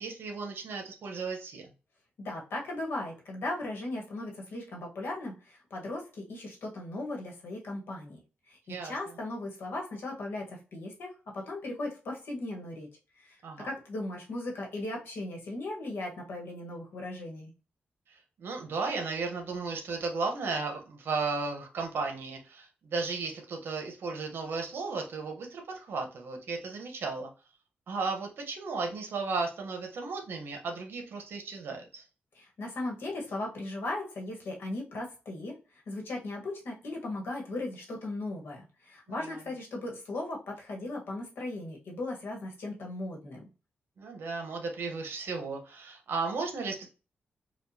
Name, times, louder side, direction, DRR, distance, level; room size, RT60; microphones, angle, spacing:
voice 1, 0.0-1.6 8.7-8.9 13.4-13.7 18.1-27.3 27.9-32.0 39.1-39.4 44.0-46.9, right 4 dB, 75° right, 3 dB, 1.0 m, -35 dB
voice 2, 2.2-8.2 8.5-8.6 8.8-12.9 13.2-17.5 32.3-35.5 35.9-43.4, left 2 dB, 75° left, 0 dB, 1.3 m, -37 dB
4.3 x 2.4 x 2.7 m, 0.33 s
wide cardioid pair, 115°, 4 cm